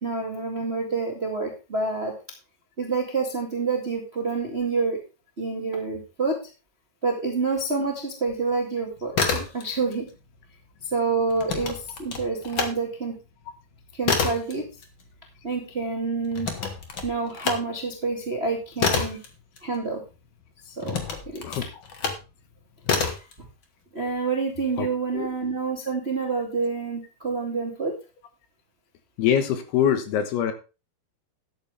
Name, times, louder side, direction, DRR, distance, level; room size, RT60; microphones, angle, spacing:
voice 1, 0.0-2.1 2.8-5.0 5.4-6.4 7.0-10.1 10.8-13.1 13.9-14.7 15.4-16.5 17.0-19.2 19.6-20.0 20.6-21.5 22.9-23.1 23.4-23.5 23.9-28.0, right 4 dB, 30° right, 1 dB, 1.1 m, -28 dB
sound 1, 9.0-10.0 10.3-12.7 13.1-20.2 20.8-22.3 22.8-23.3, left 5 dB, 55° left, 1.3 m, -28 dB
voice 2, 24.8-25.3 29.2-30.5, left 9 dB, 75° left, 8 dB, 3.2 m, -24 dB
13.0 x 10.0 x 3.5 m, 0.32 s
omnidirectional pair, 4.9 m